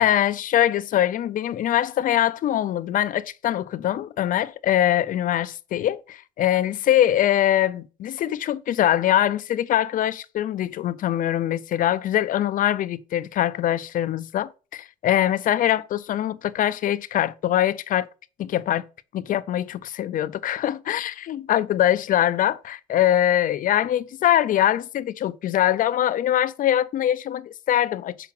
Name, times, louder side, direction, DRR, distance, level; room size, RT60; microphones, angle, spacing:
voice 1, 0.0-18.1 18.4-18.8 19.1-28.2, left 12 dB, 55° left, 0.5 m, -23 dB
5.9 x 4.9 x 5.9 m
cardioid pair, 110°, 17 cm